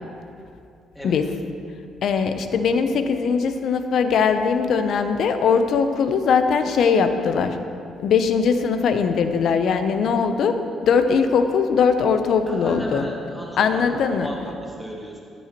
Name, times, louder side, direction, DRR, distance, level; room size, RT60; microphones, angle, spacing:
voice 1, 2.0-7.6 8.0-10.6 10.8-13.1 13.6-14.3, left 6 dB, 70° left, 8 dB, 0.6 m, -20 dB
voice 2, 12.5-15.2, equal, 5° left, -4 dB, 2.0 m, -35 dB
10.5 x 9.3 x 3.0 m, 2.5 s
cardioid pair, 90°, 0 cm